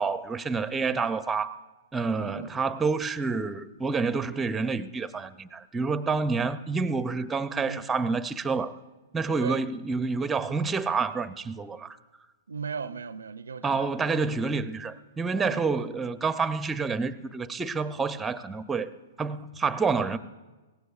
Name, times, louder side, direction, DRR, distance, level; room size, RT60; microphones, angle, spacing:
voice 1, 0.0-1.6 1.9-8.7 9.1-12.0 13.6-18.9 19.2-20.2, right 4 dB, 15° right, 0.5 m, -28 dB
voice 2, 0.7-1.1 2.2-2.5 7.5-7.9 9.4-9.6 12.5-14.2 14.4-14.6 15.4-15.6, right 5 dB, 85° right, 0.4 m, -38 dB
22.0 x 17.5 x 2.4 m
hypercardioid pair, 115°, 0 cm